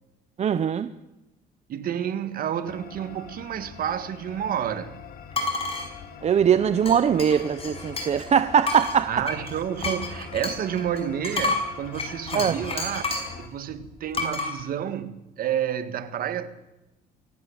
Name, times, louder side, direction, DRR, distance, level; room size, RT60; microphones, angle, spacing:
voice 1, 0.4-0.9 6.2-9.3 12.3-12.5, right 8 dB, 40° right, 0.8 m, -21 dB
voice 2, 1.7-4.9 9.1-13.1 13.4-16.5, right 9 dB, 60° right, 1.8 m, -30 dB
sound 1, 2.7-13.5, left 6 dB, 60° left, 3.1 m, -44 dB
sound 2, 5.3-5.9 6.9-8.3 8.6-13.4 14.1-14.5, left 3 dB, 35° left, 5.6 m, -30 dB
24.0 x 17.0 x 7.3 m
cardioid pair, 110°, 17 cm